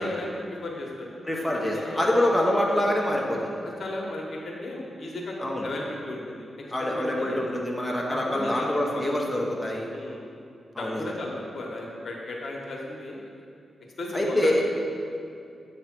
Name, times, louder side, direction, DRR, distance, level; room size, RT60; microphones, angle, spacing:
voice 1, 0.0-1.1 1.4-2.6 3.6-7.4 8.1-8.7 8.9-9.0 9.9-10.3 10.8-13.3 14.0-14.5, left 2 dB, 60° left, -2 dB, 1.2 m, -35 dB
voice 2, 1.2-3.6 5.4-5.7 6.7-9.9 10.7-11.0 14.1-14.6, left 1 dB, 10° left, -3 dB, 1.1 m, -25 dB
8.5 x 3.3 x 6.0 m, 2.6 s
cardioid pair, 65°, 0 cm